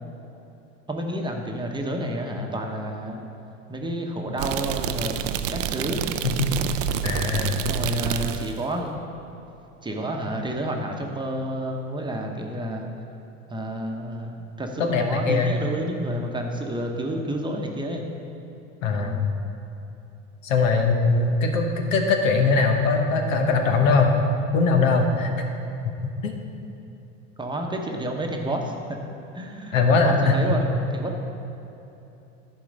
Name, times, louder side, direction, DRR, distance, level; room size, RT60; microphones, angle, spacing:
voice 1, 0.9-3.2 3.7-5.2 5.5-6.0 7.6-8.9 9.8-12.9 13.5-18.0 18.9-19.2 27.4-28.7 29.3-30.7 30.9-31.2, right 1 dB, 10° right, 1 dB, 0.9 m, -30 dB
sound 1, 4.4-8.6, right 9 dB, 80° right, 0.5 m, -28 dB
voice 2, 7.0-7.6 14.8-15.6 18.8-19.2 20.4-24.2 24.5-25.3 26.2-26.4 29.7-30.6, left 4 dB, 85° left, 3 dB, 1.1 m, -21 dB
10.5 x 4.7 x 5.2 m, 2.9 s
hypercardioid pair, 95°, 39 cm